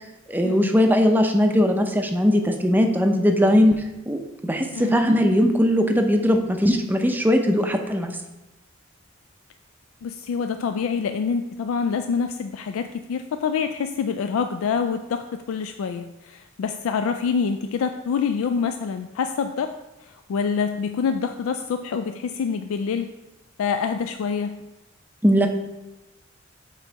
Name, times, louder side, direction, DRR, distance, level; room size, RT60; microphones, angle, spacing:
voice 1, 0.3-3.7 4.1-8.1 25.2-25.5, equal, 10° right, 4 dB, 0.5 m, -19 dB
voice 2, 10.0-19.7 20.3-23.1 23.6-24.6, left 6 dB, 80° left, 7 dB, 0.3 m, -26 dB
7.5 x 3.0 x 4.5 m, 0.96 s
head